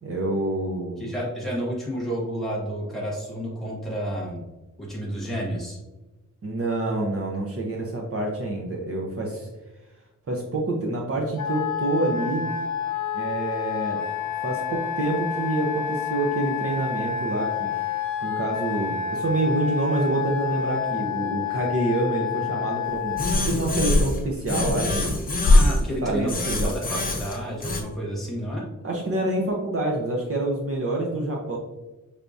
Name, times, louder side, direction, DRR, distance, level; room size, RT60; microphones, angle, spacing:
voice 1, 0.0-1.1 6.4-9.5 10.3-12.5 13.1-14.0 14.4-25.1 26.0-26.7 28.8-31.6, right 2 dB, 45° right, -1 dB, 0.7 m, -27 dB
voice 2, 1.0-4.4 4.8-5.8 25.4-28.6, equal, ahead, -5 dB, 1.4 m, -30 dB
Wind instrument woodwind instrument, 11.4-23.4, left 7 dB, 65° left, 0.6 m, -29 dB
sound 1, 23.2-24.2 24.5-25.8 26.3-27.8, left 2 dB, 25° left, 0.7 m, -22 dB
5.8 x 3.4 x 2.6 m, 1.1 s
wide cardioid pair, 170°, 32 cm